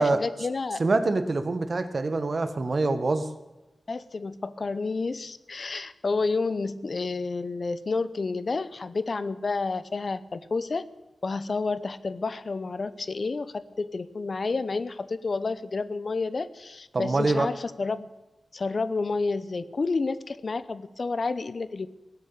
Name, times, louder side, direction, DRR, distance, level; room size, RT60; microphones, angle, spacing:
voice 1, 0.0-0.8 3.9-10.8 11.2-18.1 18.5-21.9, left 3 dB, 50° left, 15 dB, 0.7 m, -30 dB
voice 2, 0.8-3.3 16.9-17.5, right 3 dB, 50° right, 10 dB, 1.2 m, -25 dB
17.5 x 6.9 x 8.5 m, 1.1 s
wide cardioid pair, 95°, 0 cm